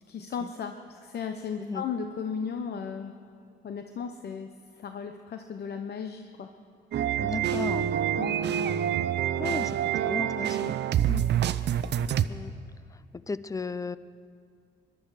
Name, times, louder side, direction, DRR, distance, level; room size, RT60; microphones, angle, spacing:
voice 1, 0.1-3.1 3.6-6.5 8.2-8.4 11.1-11.2, left 6 dB, 55° left, 7 dB, 0.8 m, -35 dB
sound 1, 6.9-12.3, right 10 dB, 60° right, 0.6 m, -27 dB
voice 2, 7.2-7.9 9.4-9.8 10.0-10.7 12.3-12.5 13.3-14.0, left 4 dB, 15° left, 16 dB, 0.4 m, -34 dB
21.5 x 12.0 x 4.9 m, 2.3 s
cardioid pair, 90°, 20 cm